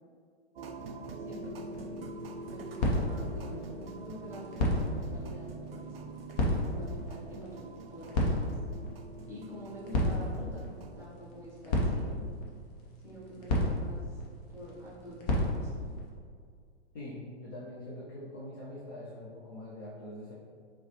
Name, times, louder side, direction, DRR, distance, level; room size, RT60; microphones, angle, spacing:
sound 1, 0.6-11.1, right 2 dB, 60° right, 0.4 m, -45 dB
voice 1, 1.2-2.1 2.4-6.1 6.6-8.6 9.3-12.2 13.0-14.2 14.5-15.9, equal, 5° right, -6 dB, 1.0 m, -46 dB
sound 2, 1.6-16.1, left 1 dB, 35° left, 0.8 m, -34 dB
voice 2, 16.9-20.3, left 1 dB, 20° left, -5 dB, 0.3 m, -43 dB
4.3 x 2.9 x 3.0 m, 2.1 s
figure-of-eight pair, 110°, 34 cm